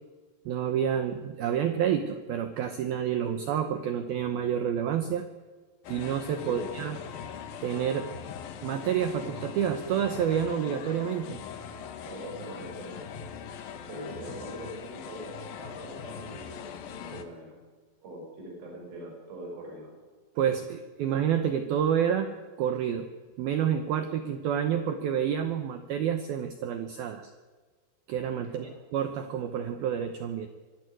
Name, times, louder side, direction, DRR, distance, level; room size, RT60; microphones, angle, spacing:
voice 1, 0.5-5.3 5.9-7.0 7.6-8.1 8.6-11.4 20.4-23.1 23.4-27.3 28.1-30.5, right 9 dB, 80° right, 8 dB, 2.1 m, -29 dB
sound 1, 5.8-17.2, left 7 dB, 65° left, 2.4 m, -41 dB
voice 2, 6.5-6.8 12.1-13.0 13.9-17.6 18.0-19.9 28.5-28.8, right 1 dB, 50° right, -1 dB, 7.0 m, -42 dB
25.0 x 12.5 x 9.4 m, 1.4 s
omnidirectional pair, 5.7 m